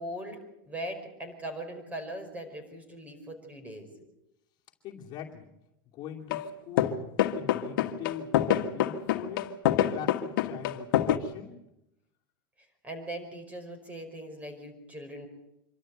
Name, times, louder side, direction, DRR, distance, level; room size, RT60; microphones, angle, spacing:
voice 1, 0.0-3.9 12.8-15.3, right 1 dB, 15° right, 6 dB, 5.3 m, -40 dB
voice 2, 4.8-5.5 5.9-9.5 9.9-11.6, left 9 dB, 40° left, -1 dB, 2.7 m, -42 dB
sound 1, 6.3-6.5 6.8-11.2, left 12 dB, 75° left, 1.7 m, -25 dB
25.5 x 13.0 x 9.1 m, 0.85 s
supercardioid pair, 135°, 11 cm